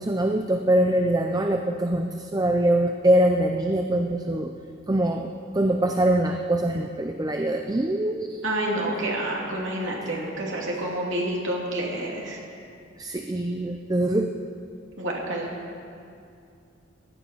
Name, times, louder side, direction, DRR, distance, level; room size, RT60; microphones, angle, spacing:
voice 1, 0.0-4.5 4.9-8.5 13.0-14.4, right 1 dB, 20° right, 4 dB, 0.5 m, -23 dB
voice 2, 8.4-12.4 15.0-15.5, right 1 dB, 75° right, -3 dB, 2.8 m, -28 dB
16.5 x 11.5 x 5.7 m, 2.5 s
head